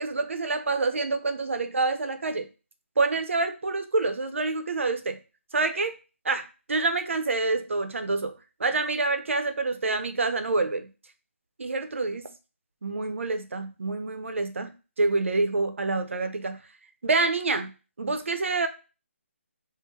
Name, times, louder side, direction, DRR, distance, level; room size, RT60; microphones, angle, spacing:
voice 1, 0.0-2.5 3.0-5.2 5.5-6.0 6.2-8.3 8.6-10.9 11.6-12.3 12.8-14.7 15.0-16.6 17.0-17.7 18.0-18.7, right 3 dB, 65° right, 8 dB, 0.6 m, -27 dB
3.7 x 2.0 x 4.0 m, 0.32 s
hypercardioid pair, 180°, 7 cm